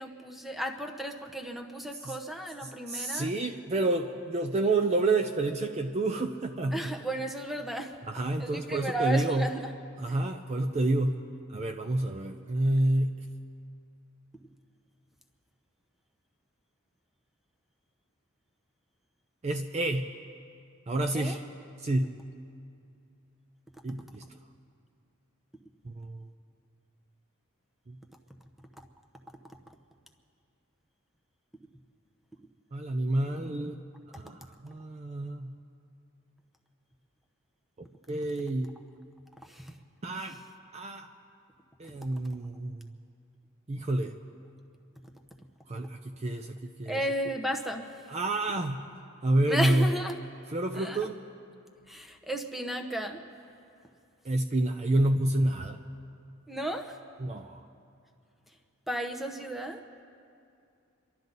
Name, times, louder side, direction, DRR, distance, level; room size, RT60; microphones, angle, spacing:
voice 1, 0.0-3.3 6.7-8.0 8.4-9.7 21.1-21.4 39.4-39.7 46.9-47.9 49.5-50.2 50.7-51.0 51.9-53.2 56.5-57.0 58.9-59.8, right 1 dB, ahead, 4 dB, 0.8 m, -34 dB
voice 2, 2.6-6.9 8.1-9.5 10.0-11.2 11.5-13.2 19.4-20.1 20.9-21.4 21.8-22.2 23.8-24.2 25.8-26.3 27.9-28.0 32.7-33.8 34.1-35.6 38.1-38.7 40.0-40.4 40.7-41.1 41.8-42.9 43.7-44.2 45.7-47.0 48.1-48.9 49.2-49.9 50.5-51.2 54.2-55.8 57.2-57.7, right 2 dB, 30° right, 5 dB, 0.5 m, -29 dB
28.5 x 12.0 x 4.0 m, 2.5 s
head